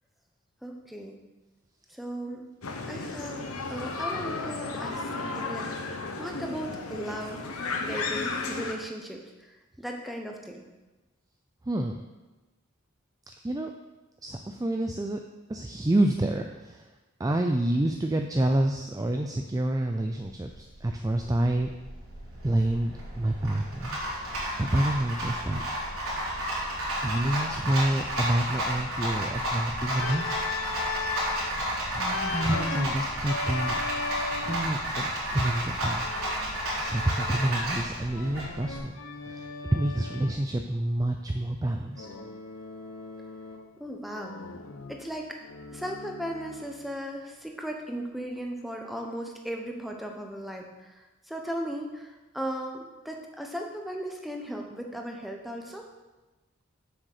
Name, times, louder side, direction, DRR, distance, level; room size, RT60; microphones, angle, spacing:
voice 1, 0.6-1.2 1.9-2.5 2.9-7.5 7.8-10.7 43.8-44.4 44.9-45.4 45.7-55.9, equal, ahead, 1 dB, 0.9 m, -37 dB
sound 1, 2.6-8.7, left 3 dB, 80° left, 1.1 m, -34 dB
voice 2, 11.7-12.0 13.4-13.7 14.2-15.2 15.5-16.9 17.2-21.7 22.4-25.6 27.0-30.3 31.0-31.6 31.9-33.8 34.4-36.1 36.8-38.9 39.2-42.1, right 1 dB, 15° right, 4 dB, 0.4 m, -28 dB
Rattle, 20.2-38.8, equal, 80° right, 3.8 m, -32 dB
Organ, 29.9-31.5 32.1-34.7 36.0-37.7 38.1-40.4 42.0-43.8 44.1-46.8, left 4 dB, 65° left, 0.6 m, -38 dB
7.9 x 6.4 x 6.6 m, 1.1 s
head